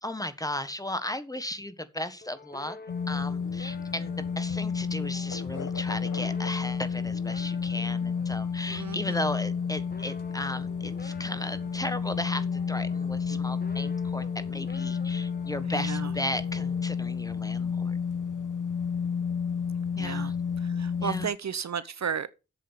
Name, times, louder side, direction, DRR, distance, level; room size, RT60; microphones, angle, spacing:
voice 1, 0.0-2.8 3.1-18.0 19.9-20.3 21.0-21.3, left 1 dB, 10° left, 1.3 m, -35 dB
sound 1, 2.2-17.6, left 3 dB, 30° left, 1.4 m, -48 dB
sound 2, 2.9-21.3, left 6 dB, 80° left, 1.1 m, -31 dB
voice 2, 8.7-9.2 13.3-13.4 15.6-16.1 20.0-20.3 20.6-22.3, right 7 dB, 60° right, 0.9 m, -34 dB
8.0 x 7.6 x 7.0 m
wide cardioid pair, 85°, 30 cm